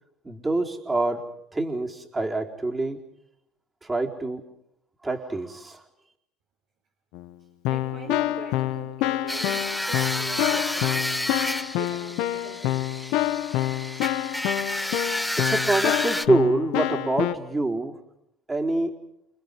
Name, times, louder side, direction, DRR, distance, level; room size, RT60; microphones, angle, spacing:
voice 1, 0.2-3.0 3.8-4.4 5.0-5.8 15.4-18.0 18.5-19.0, right 2 dB, 20° right, 1 dB, 4.2 m, -26 dB
Keyboard (musical), 7.1-7.3 7.6-17.3, left 15 dB, 70° left, 1.7 m, -27 dB
voice 2, 7.7-11.1 11.7-13.0, right 6 dB, 65° right, 0 dB, 4.7 m, -42 dB
sound 1, 9.3-16.3, left 1 dB, 5° left, 1.0 m, -30 dB
29.5 x 28.0 x 5.4 m, 0.80 s
hypercardioid pair, 75°, 0 cm